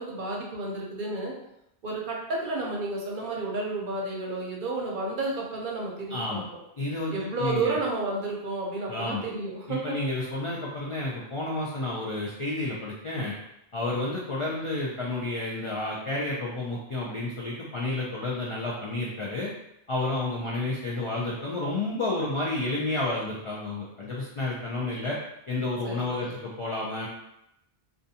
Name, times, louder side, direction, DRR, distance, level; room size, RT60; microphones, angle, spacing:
voice 1, 0.0-1.3 1.8-6.4 7.1-10.0 25.8-26.3, right 2 dB, 60° right, -2 dB, 0.7 m, -31 dB
voice 2, 6.1-6.5 6.8-7.8 8.9-9.2 9.7-13.3 13.7-19.5 19.9-25.2 25.5-27.1, left 2 dB, 55° left, -5 dB, 0.3 m, -30 dB
2.4 x 2.2 x 2.6 m, 0.83 s
omnidirectional pair, 1.0 m